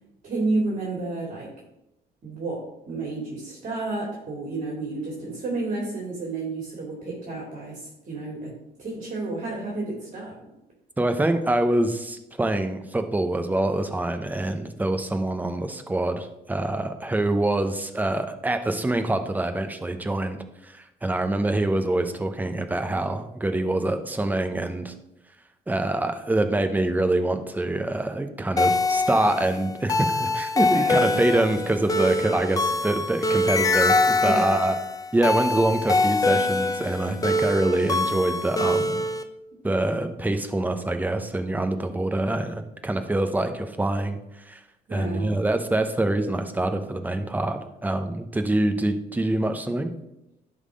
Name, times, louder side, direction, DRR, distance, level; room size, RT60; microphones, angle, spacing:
voice 1, 0.2-1.5 2.2-10.4 30.7-31.2 34.2-34.6 44.9-45.4, right 3 dB, 45° right, -2 dB, 2.3 m, -31 dB
voice 2, 11.0-20.4 20.6-24.9 25.7-34.8 35.1-39.0 39.6-44.6 44.9-49.9, right 2 dB, 10° right, 7 dB, 0.8 m, -25 dB
sound 1, 28.6-39.2, left 2 dB, 20° left, 0.7 m, -24 dB
11.0 x 3.8 x 4.9 m, 0.89 s
cardioid pair, 110°, 17 cm